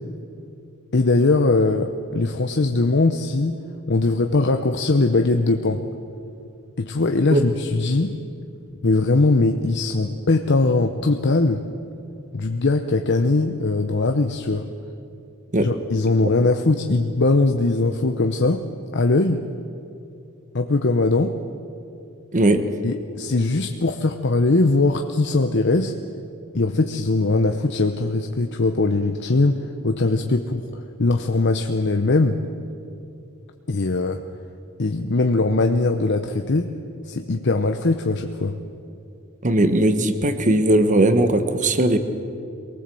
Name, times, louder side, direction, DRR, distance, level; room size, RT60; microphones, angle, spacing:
voice 1, 0.9-3.6 3.9-5.9 6.8-8.2 8.8-11.7 12.3-14.7 15.6-18.6 18.9-19.4 20.5-21.4 22.8-25.9 26.5-29.6 29.8-32.4 33.7-34.2 34.8-36.7 37.1-38.6, left 3 dB, 55° left, 5 dB, 0.8 m, -20 dB
voice 2, 39.4-42.0, right 1 dB, 35° right, 9 dB, 1.3 m, -18 dB
23.5 x 18.5 x 7.7 m, 2.6 s
head